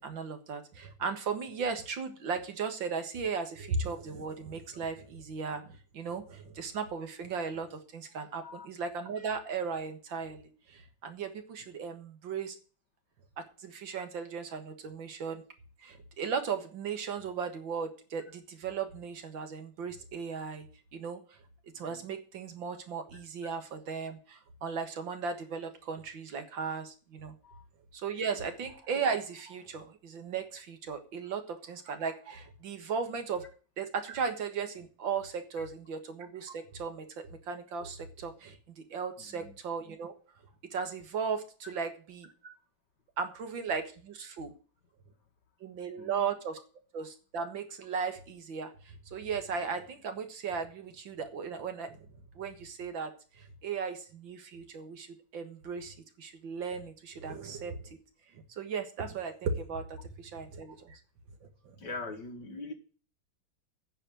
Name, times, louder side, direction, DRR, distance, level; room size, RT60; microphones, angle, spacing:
voice 1, 0.0-12.6 13.4-15.4 15.8-20.7 20.9-21.2 21.7-27.3 27.9-33.5 33.8-40.1 40.7-42.5 43.2-44.5 45.6-46.6 46.9-52.1 52.4-55.1 55.3-58.0 58.6-61.0 61.4-61.5, right 5 dB, 70° right, 8 dB, 2.3 m, -36 dB
voice 2, 39.2-39.5 41.6-41.7 46.0-46.2 61.8-62.7, left 3 dB, 60° left, 5 dB, 2.4 m, -43 dB
10.0 x 6.6 x 9.1 m, 0.38 s
omnidirectional pair, 2.1 m